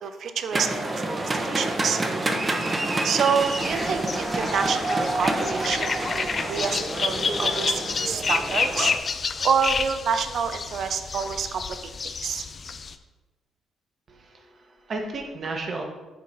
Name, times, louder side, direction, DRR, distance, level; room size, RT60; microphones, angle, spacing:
voice 1, 0.0-0.9 1.2-2.0 3.0-8.9 9.4-11.9 12.2-12.4, right 6 dB, 65° right, 9 dB, 0.5 m, -27 dB
sound 1, 0.5-9.0, right 2 dB, 25° right, 0.9 m, -28 dB
sound 2, 3.4-13.0, left 5 dB, 40° left, 0.4 m, -30 dB
voice 2, 14.1-15.8, right 3 dB, 45° right, 2 dB, 1.3 m, -34 dB
6.9 x 3.8 x 4.9 m, 1.2 s
cardioid pair, 90°, 0 cm